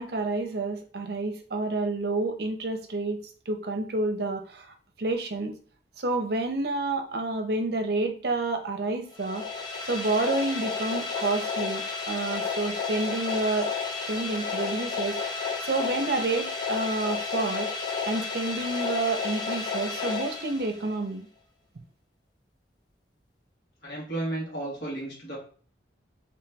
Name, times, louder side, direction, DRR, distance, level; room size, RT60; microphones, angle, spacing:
voice 1, 0.0-3.2 3.5-4.6 5.0-5.5 6.0-9.4 9.9-13.7 14.1-17.7 18.1-21.3, right 2 dB, 60° right, 5 dB, 0.6 m, -29 dB
sound 1, 9.1-21.0, left 5 dB, 20° left, 0.5 m, -32 dB
voice 2, 23.8-25.4, right 1 dB, 60° left, -4 dB, 1.8 m, -33 dB
3.1 x 3.0 x 3.4 m, 0.42 s
head